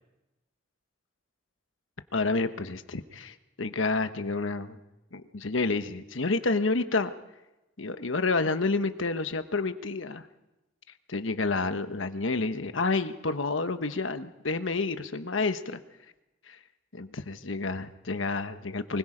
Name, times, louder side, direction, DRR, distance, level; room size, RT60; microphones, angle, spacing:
voice 1, 2.1-4.8 5.1-7.1 7.8-10.3 11.1-15.8 16.5-16.6 16.9-19.0, left 3 dB, 80° left, 9 dB, 1.2 m, -29 dB
24.0 x 21.0 x 5.1 m, 0.99 s
head